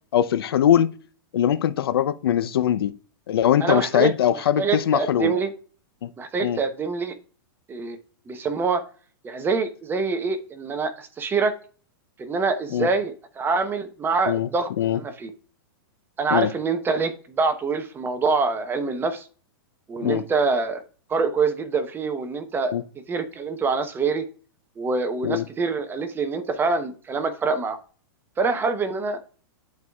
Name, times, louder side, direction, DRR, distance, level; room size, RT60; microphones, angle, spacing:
voice 1, 0.1-0.9 1.3-2.9 3.3-5.3 6.0-6.1 6.4-6.6 12.7-12.9 14.3-14.5 14.8-15.0 16.3-16.5 20.0-20.2 22.7-22.8 25.2-25.4, left 10 dB, 80° left, 0.6 m, -21 dB
voice 2, 3.6-5.5 6.2-7.2 7.7-8.0 8.3-8.8 9.2-11.5 12.2-15.3 16.2-19.3 19.9-20.8 21.1-22.7 23.1-24.2 24.8-27.8 28.4-29.2, right 4 dB, 15° right, 0.8 m, -25 dB
10.5 x 4.7 x 2.3 m
hypercardioid pair, 130°, 12 cm